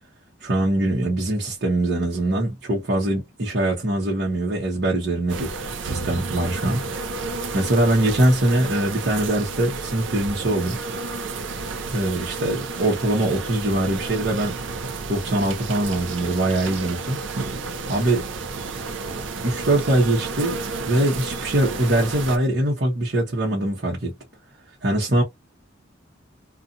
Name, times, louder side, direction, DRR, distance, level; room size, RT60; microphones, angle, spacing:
voice 1, 0.4-5.5 5.8-6.8 7.5-10.8 11.9-14.5 15.1-17.2 17.9-18.3 19.4-20.6 20.8-24.2 24.8-25.2, right 1 dB, 55° right, 0.9 m, -22 dB
sound 1, 5.3-22.4, right 4 dB, 75° right, 0.5 m, -31 dB
2.6 x 2.4 x 2.4 m
head